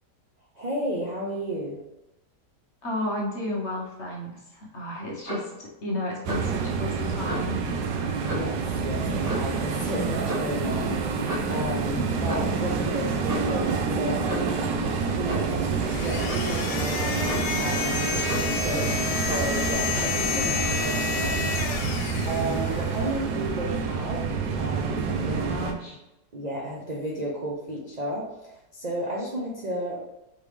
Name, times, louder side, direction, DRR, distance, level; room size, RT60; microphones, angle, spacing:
voice 1, 0.5-1.8 8.3-11.9 12.2-14.6 15.1-21.8 22.3-24.2 24.6-25.7 26.3-30.0, right 1 dB, 55° right, -4 dB, 0.4 m, -33 dB
voice 2, 2.8-7.6 12.0-12.1 25.0-26.0, left 1 dB, 50° left, -2 dB, 1.0 m, -33 dB
Clock, 5.2-5.5 6.3-6.6 7.2-7.5 8.2-8.6 9.2-9.6 10.2-10.5 11.2-11.6 12.2-12.6 13.2-13.6 14.3-14.5 15.2-15.5 16.3-16.5 17.3-17.6 18.3-18.5 19.3-19.5, equal, 30° right, 1.3 m, -34 dB
sound 1, 6.2-25.7, right 5 dB, 85° right, 1.3 m, -28 dB
sound 2, 15.8-23.2, left 5 dB, 80° left, 1.2 m, -30 dB
4.8 x 3.5 x 3.2 m, 0.93 s
omnidirectional pair, 1.9 m